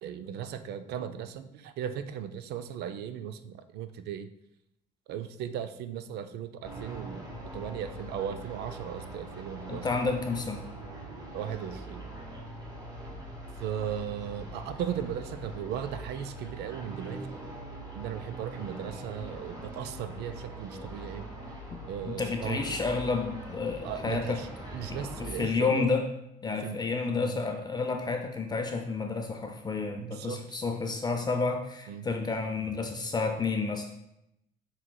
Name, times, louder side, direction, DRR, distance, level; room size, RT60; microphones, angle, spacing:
voice 1, 0.0-4.3 5.1-7.3 7.5-9.9 11.3-12.1 13.6-17.3 17.9-21.3 21.9-22.8 23.8-24.5 24.7-25.9 26.6-26.8 27.2-27.4 30.0-30.4 31.9-32.1, right 9 dB, 75° right, 10 dB, 0.4 m, -37 dB
sound 1, 6.6-25.4, right 1 dB, 20° right, 1.2 m, -42 dB
voice 2, 9.7-10.7 21.7-21.8 22.1-24.4 24.9-26.1 26.4-33.9, left 4 dB, 25° left, 4 dB, 0.4 m, -30 dB
7.2 x 3.1 x 2.2 m, 0.81 s
cardioid pair, 110°, 17 cm